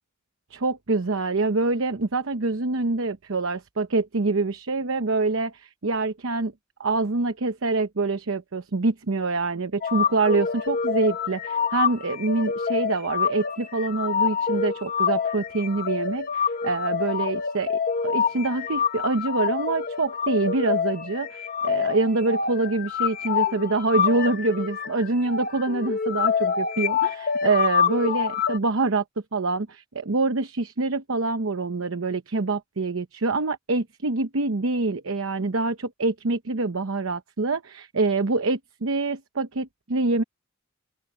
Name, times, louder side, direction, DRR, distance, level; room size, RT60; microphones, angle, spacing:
voice 1, 0.5-6.5 6.8-29.0 29.3-40.2, right 3 dB, 75° right, 0.9 m, -25 dB
sound 1, 9.8-28.6, left 6 dB, 45° left, 1.2 m, -26 dB
open air
head